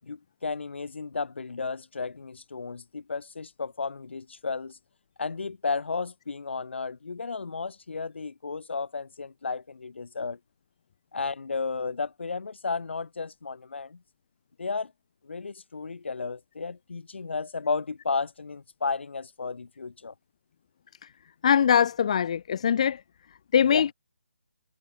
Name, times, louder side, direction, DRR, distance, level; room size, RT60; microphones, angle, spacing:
voice 1, 0.0-4.8 5.2-10.4 11.1-14.0 14.6-14.9 15.2-20.1 23.7-23.8, left 4 dB, 50° left, 7.8 m, -33 dB
voice 2, 21.4-23.0 23.5-23.9, left 8 dB, 25° left, 2.5 m, -22 dB
hypercardioid pair, 175°, 8 cm